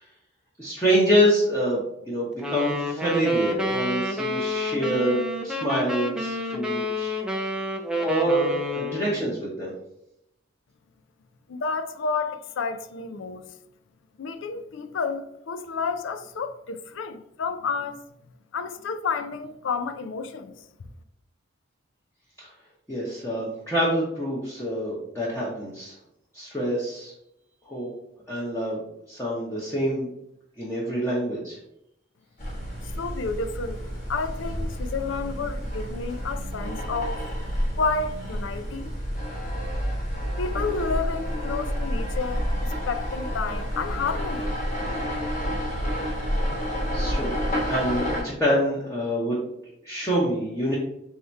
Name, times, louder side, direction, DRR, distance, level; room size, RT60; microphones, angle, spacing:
voice 1, 0.6-1.8 2.1-7.2 8.0-9.7 22.9-25.9 26.3-27.1 27.7-27.9 28.3-28.8 29.1-30.1 30.6-31.6 46.9-47.3 47.6-49.4 49.8-50.7, equal, 15° left, 0.8 m, -26 dB
sound 1, 2.4-9.2, left 1 dB, 5° right, 0.4 m, -29 dB
voice 2, 11.5-13.4 14.2-18.0 18.5-20.5 32.8-37.2 37.8-38.9 40.4-44.5, left 4 dB, 75° left, 0.4 m, -30 dB
sound 2, 32.4-48.2, equal, 40° left, 1.2 m, -29 dB
3.5 x 2.8 x 4.4 m
head